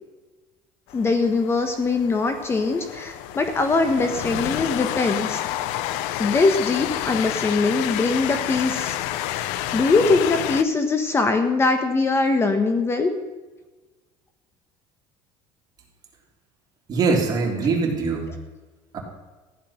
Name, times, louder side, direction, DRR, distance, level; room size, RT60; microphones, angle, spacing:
Train, 0.9-10.6, left 13 dB, 75° left, 0.8 m, -29 dB
voice 1, 0.9-5.4 6.2-9.0 9.7-13.1, left 3 dB, 25° left, 7 dB, 1.2 m, -22 dB
voice 2, 16.9-18.3 18.9-19.0, right 4 dB, 35° right, 0 dB, 3.4 m, -22 dB
14.5 x 11.0 x 5.9 m, 1.2 s
cardioid pair, 125°, 11 cm